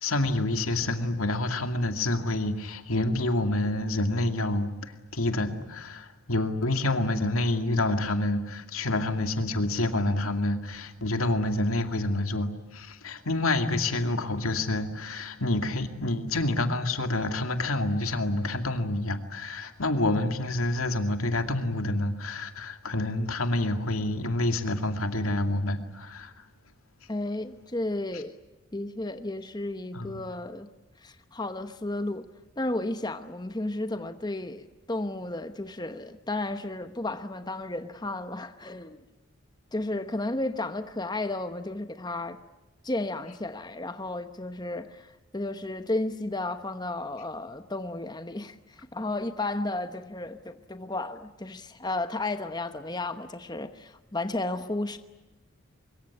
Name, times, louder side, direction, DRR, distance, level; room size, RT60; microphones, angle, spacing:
voice 1, 0.0-4.7 5.1-26.3 29.9-30.2, left 2 dB, 85° left, 2.4 m, -28 dB
voice 2, 27.1-28.3 28.7-30.7 31.0-32.3 32.6-39.0 39.7-42.4 42.8-55.0, left 2 dB, 20° left, 1.0 m, -33 dB
24.0 x 23.0 x 9.8 m
head